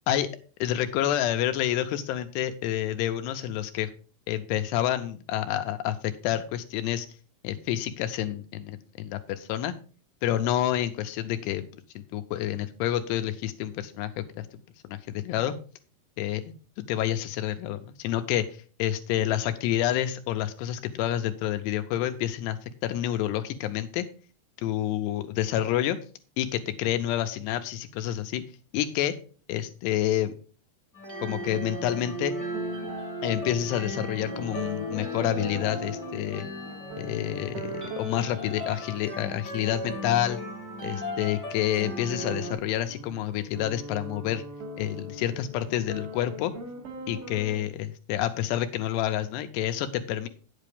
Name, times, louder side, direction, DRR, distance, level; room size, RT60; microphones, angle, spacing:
voice 1, 0.6-3.9 4.3-7.1 7.4-9.7 10.2-11.7 12.0-14.5 14.8-15.5 16.2-16.5 16.9-18.5 18.8-24.1 24.6-26.0 26.4-28.4 28.7-29.2 29.5-30.3 31.2-32.3 33.2-36.5 37.0-40.4 40.8-44.4 44.8-46.5 47.1-50.3, left 12 dB, 85° left, 9 dB, 2.6 m, -28 dB
sound 1, 30.9-42.5, equal, 20° left, 0.5 m, -36 dB
sound 2, 32.5-47.6, right 1 dB, 85° right, 4.1 m, -41 dB
9.5 x 8.3 x 3.5 m, 0.38 s
omnidirectional pair, 5.1 m